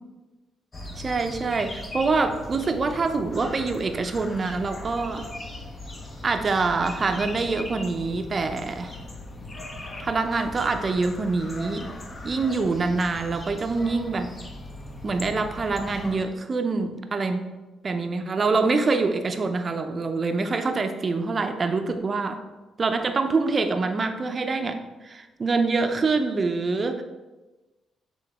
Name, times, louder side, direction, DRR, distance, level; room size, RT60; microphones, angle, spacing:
sound 1, 0.7-16.2, left 1 dB, 30° left, 1.0 m, -39 dB
voice 1, 1.0-5.3 6.2-9.0 10.0-11.9 12.2-14.3 15.0-17.5 17.8-22.4 22.8-27.0, right 3 dB, 35° right, 7 dB, 0.6 m, -25 dB
8.0 x 3.8 x 3.6 m, 1.2 s
cardioid pair, 90°, 0 cm